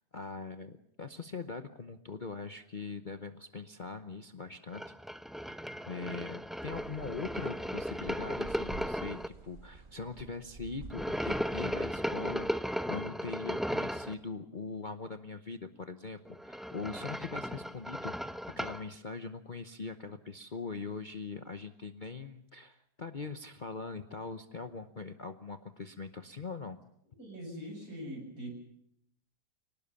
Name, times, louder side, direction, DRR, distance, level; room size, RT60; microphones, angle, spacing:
voice 1, 0.1-4.9 5.9-26.8, left 4 dB, 35° left, 8 dB, 0.9 m, -42 dB
sound 1, 4.7-9.3 10.9-14.1 16.2-18.8, equal, ahead, 0.3 m, -36 dB
sound 2, 6.7-12.5, right 3 dB, 35° right, 1.4 m, -50 dB
voice 2, 27.1-28.5, equal, 65° right, 2 dB, 7.5 m, -42 dB
24.0 x 19.0 x 7.1 m, 0.72 s
omnidirectional pair, 1.7 m